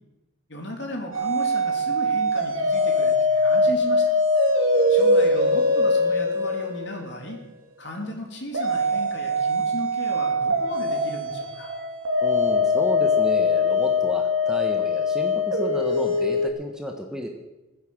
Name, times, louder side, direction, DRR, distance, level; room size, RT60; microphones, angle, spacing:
voice 1, 0.5-4.1 4.9-7.4 7.8-11.7, left 1 dB, 55° left, 1 dB, 3.3 m, -36 dB
sound 1, 1.1-7.3 8.5-16.5, left 2 dB, 80° right, 2.6 m, -22 dB
voice 2, 12.2-17.3, equal, 5° right, 2 dB, 1.2 m, -32 dB
17.0 x 10.0 x 7.3 m, 1.0 s
head